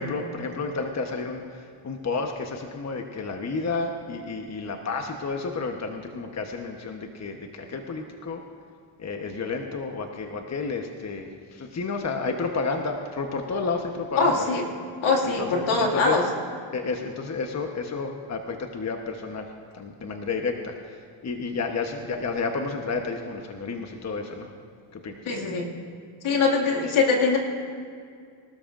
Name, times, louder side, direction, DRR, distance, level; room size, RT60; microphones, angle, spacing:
voice 1, 0.0-8.4 9.0-14.5 15.2-16.2 16.7-24.5 24.9-25.3, left 4 dB, 35° left, 4 dB, 1.1 m, -31 dB
voice 2, 14.2-14.6 15.0-16.2 25.3-25.7 26.2-27.4, left 4 dB, 75° left, 0 dB, 2.4 m, -22 dB
24.0 x 13.0 x 2.6 m, 2.2 s
cardioid pair, 85°, 49 cm